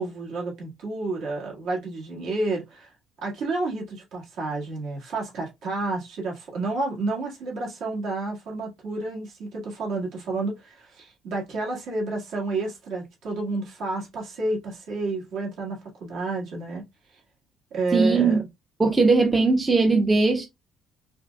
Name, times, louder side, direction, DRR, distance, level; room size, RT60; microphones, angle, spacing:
voice 1, 0.0-2.9 3.2-16.8 17.7-18.4, right 3 dB, 65° right, 1.6 m, -30 dB
voice 2, 17.9-18.4 18.8-20.5, right 3 dB, 15° right, 0.4 m, -19 dB
5.0 x 2.2 x 2.3 m
cardioid pair, 170°, 0 cm